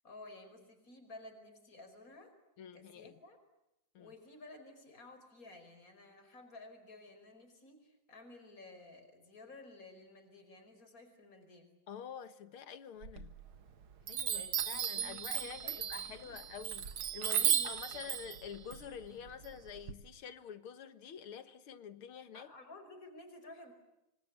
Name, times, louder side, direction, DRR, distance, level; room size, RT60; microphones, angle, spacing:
voice 1, 0.0-2.3 2.7-3.4 4.0-11.7 14.3-16.4 17.3-18.1 22.3-23.7, left 2 dB, 40° left, 5.4 m, -54 dB
voice 2, 2.6-3.2 3.9-4.1 11.9-13.3 14.1-22.5, left 8 dB, 90° left, 2.3 m, -48 dB
Chime, 13.0-13.7 14.1-19.9, right 9 dB, 75° right, 2.3 m, -35 dB
26.5 x 25.5 x 8.4 m
omnidirectional pair, 2.3 m